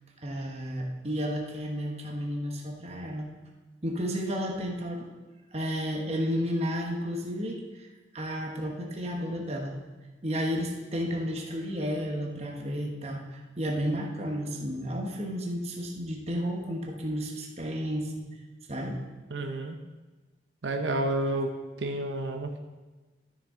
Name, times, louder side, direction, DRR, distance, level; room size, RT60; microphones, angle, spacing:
voice 1, 0.2-3.3 3.8-5.1 5.5-7.6 8.1-9.8 10.2-18.1 18.7-19.0, equal, 35° right, 0 dB, 1.1 m, -32 dB
voice 2, 19.3-19.8 20.6-21.5 21.8-22.6, right 1 dB, 85° right, 4 dB, 0.8 m, -30 dB
12.5 x 6.5 x 3.8 m, 1.2 s
head